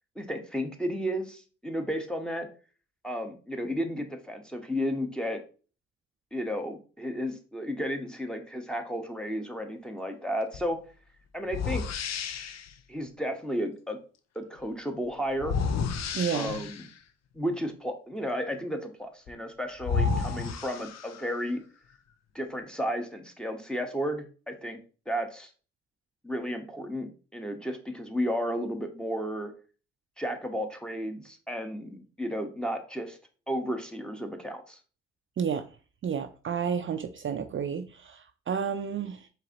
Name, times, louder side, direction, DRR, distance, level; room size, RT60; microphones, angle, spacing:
voice 1, 0.2-2.5 3.0-5.4 6.3-10.8 11.3-12.0 12.9-14.0 14.3-15.6 16.3-16.9 17.3-21.6 22.3-24.8 25.1-25.5 26.2-29.5 30.2-33.2 33.5-34.8, equal, 5° left, 1.1 m, -33 dB
sound 1, 10.5-10.7 11.5-12.7 15.4-17.0 19.3-19.4 19.8-21.4, left 5 dB, 60° left, 0.6 m, -31 dB
voice 2, 16.1-16.6 35.4-35.7 36.0-39.3, right 7 dB, 45° right, 0.5 m, -31 dB
4.7 x 3.4 x 2.9 m
supercardioid pair, 50°, 29 cm